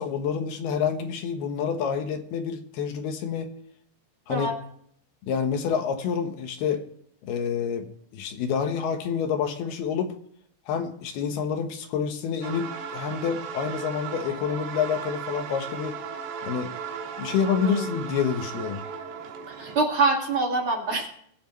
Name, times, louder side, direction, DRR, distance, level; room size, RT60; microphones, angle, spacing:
voice 1, 0.0-3.5 4.3-4.5 5.3-6.8 7.2-10.2 10.7-16.0 16.4-16.7 17.2-18.8, left 7 dB, 70° left, 6 dB, 3.1 m, -28 dB
sound 1, 12.4-19.9, right 6 dB, 75° right, 3.6 m, -36 dB
voice 2, 19.5-21.1, right 3 dB, 45° right, 0 dB, 2.0 m, -25 dB
23.0 x 7.7 x 3.1 m, 0.66 s
omnidirectional pair, 4.9 m